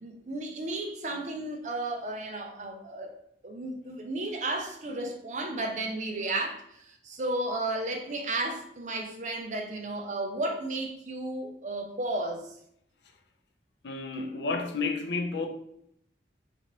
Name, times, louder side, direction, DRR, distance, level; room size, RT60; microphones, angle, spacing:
voice 1, 0.0-3.1 3.4-12.5, right 2 dB, 40° right, 0.5 m, -33 dB
voice 2, 13.8-15.5, left 3 dB, 70° left, 0.5 m, -31 dB
3.8 x 3.1 x 3.0 m
head